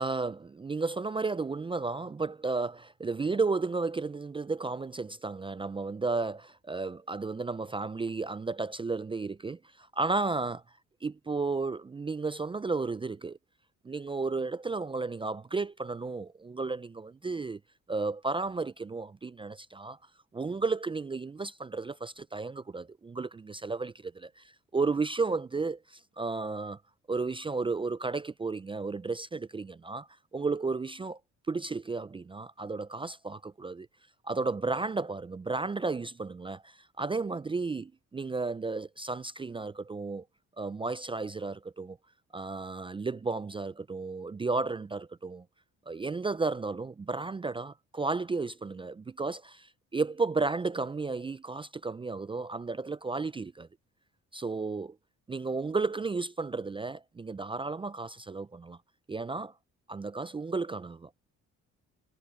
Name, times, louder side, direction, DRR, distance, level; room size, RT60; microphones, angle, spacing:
voice 1, 0.0-10.6 11.0-13.4 13.8-17.6 17.9-20.0 20.3-24.4 24.7-26.8 27.1-31.2 31.5-33.9 34.2-40.2 40.6-42.0 42.3-45.4 45.9-53.7 54.3-55.0 55.3-58.8 59.1-59.5 59.9-61.1, right 3 dB, 20° right, 0.4 m, -33 dB
cardioid pair, 90°, 30 cm